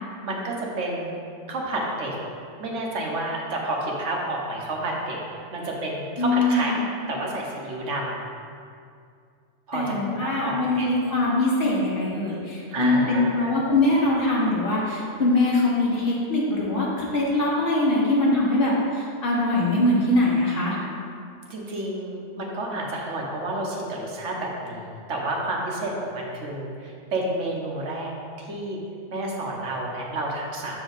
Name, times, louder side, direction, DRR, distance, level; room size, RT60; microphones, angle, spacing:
voice 1, 0.2-1.2 1.5-2.1 2.6-5.2 5.5-8.2 9.7-10.9 12.7-13.6 21.5-28.8 29.1-30.8, right 1 dB, 75° right, -2 dB, 1.3 m, -30 dB
voice 2, 6.2-6.8 9.7-20.8, left 2 dB, 50° left, -5 dB, 1.3 m, -22 dB
6.9 x 4.6 x 4.0 m, 2.3 s
omnidirectional pair, 1.3 m